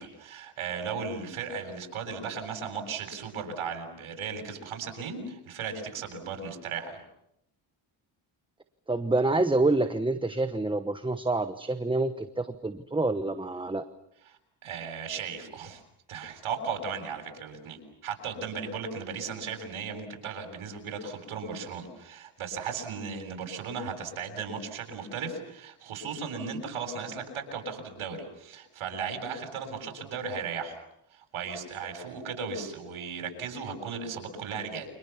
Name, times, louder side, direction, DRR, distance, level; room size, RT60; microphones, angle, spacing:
voice 1, 0.0-7.0 14.3-15.8 16.1-30.8 31.1-34.9, right 5 dB, 85° right, 5 dB, 7.8 m, -36 dB
voice 2, 8.9-13.8, right 2 dB, 10° right, 9 dB, 1.1 m, -27 dB
29.5 x 27.0 x 7.2 m, 0.77 s
cardioid pair, 130°, 48 cm